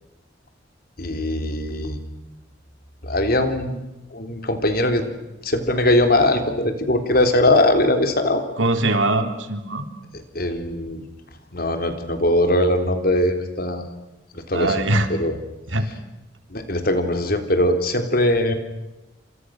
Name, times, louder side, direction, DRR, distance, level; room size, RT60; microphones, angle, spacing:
voice 1, 1.0-2.0 3.0-3.8 4.1-5.1 5.4-8.4 10.3-11.0 11.5-13.8 14.3-14.8 15.1-15.4 16.5-18.5, left 1 dB, 50° left, 7 dB, 3.6 m, -20 dB
voice 2, 8.6-9.8 14.5-15.1 15.7-15.9, right 2 dB, 90° right, 7 dB, 3.4 m, -21 dB
29.5 x 26.5 x 6.5 m, 1.0 s
head